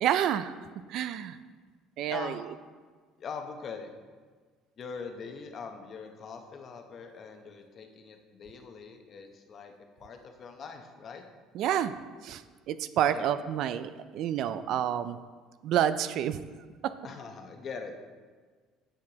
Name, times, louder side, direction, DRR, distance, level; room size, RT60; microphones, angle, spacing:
voice 1, 0.0-0.5 0.9-1.4 2.0-2.4 11.5-11.9 12.2-15.2 15.6-16.4 16.8-16.9, right 10 dB, 60° right, 13 dB, 0.3 m, -29 dB
voice 2, 3.2-3.9 4.8-11.2 13.0-13.3 17.0-17.9, left 5 dB, 40° left, 5 dB, 0.8 m, -42 dB
10.0 x 6.6 x 2.9 m, 1.5 s
cardioid pair, 125°, 0 cm